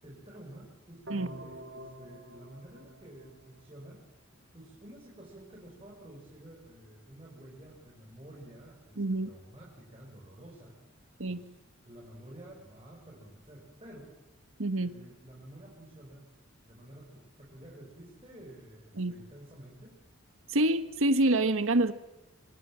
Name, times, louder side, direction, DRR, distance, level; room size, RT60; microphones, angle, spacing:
voice 1, 0.0-4.1 4.5-11.6 11.9-14.1 14.8-16.3 16.6-20.0, right 1 dB, 25° right, -3 dB, 6.2 m, -51 dB
sound 1, 1.1-4.0, right 1 dB, 60° right, 2.9 m, -48 dB
voice 2, 9.0-9.3 11.2-11.4 14.6-14.9 19.0-19.1 20.5-21.9, right 2 dB, 75° right, 11 dB, 1.5 m, -26 dB
27.5 x 25.5 x 7.6 m, 0.97 s
head